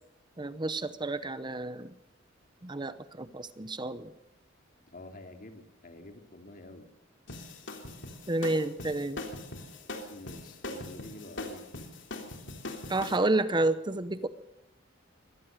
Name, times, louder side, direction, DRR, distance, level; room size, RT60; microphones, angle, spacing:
voice 1, 0.4-1.9 2.6-4.1 8.3-9.2 12.9-14.3, right 2 dB, 25° right, 13 dB, 0.8 m, -30 dB
voice 2, 4.9-6.9 10.1-11.9, left 1 dB, 45° left, 5 dB, 2.9 m, -48 dB
sound 1, 7.3-13.2, left 2 dB, 65° left, 3.4 m, -41 dB
24.0 x 18.0 x 6.7 m, 0.87 s
head